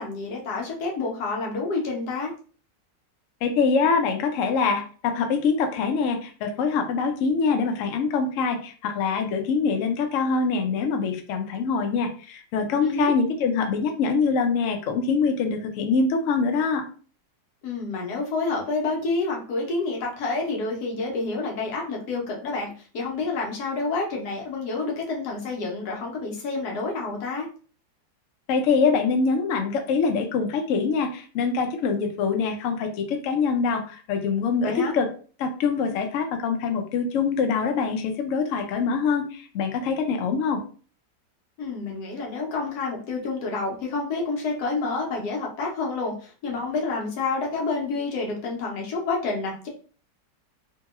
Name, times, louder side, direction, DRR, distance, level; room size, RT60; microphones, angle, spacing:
voice 1, 0.0-2.3 12.8-13.1 17.6-27.5 34.6-34.9 41.6-49.7, left 3 dB, 65° left, -1 dB, 1.2 m, -28 dB
voice 2, 3.4-16.8 28.5-35.1 35.4-40.6, left 5 dB, 85° left, 5 dB, 0.7 m, -24 dB
2.9 x 2.7 x 2.4 m, 0.40 s
omnidirectional pair, 1.9 m